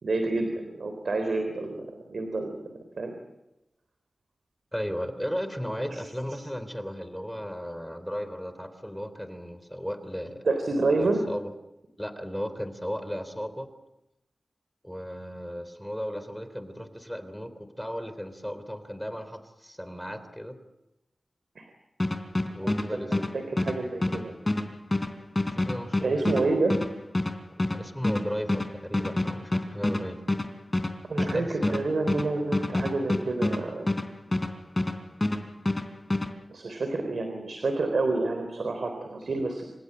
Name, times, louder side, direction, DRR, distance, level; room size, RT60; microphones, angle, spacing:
voice 1, 0.0-3.1 5.9-6.0 10.4-11.2 21.6-21.7 22.6-23.2 23.5-24.4 26.0-26.8 31.1-33.9 36.5-39.8, right 3 dB, 80° right, 6 dB, 3.7 m, -28 dB
voice 2, 4.7-10.4 11.0-11.5 12.0-13.7 14.8-20.6 22.5-23.3 25.3-26.5 27.7-30.4 31.2-31.7, equal, 5° left, 11 dB, 3.4 m, -35 dB
sound 1, 22.0-35.0 35.2-36.3, left 2 dB, 30° left, 3.6 m, -27 dB
27.5 x 16.5 x 8.9 m, 0.92 s
cardioid pair, 40°, 0 cm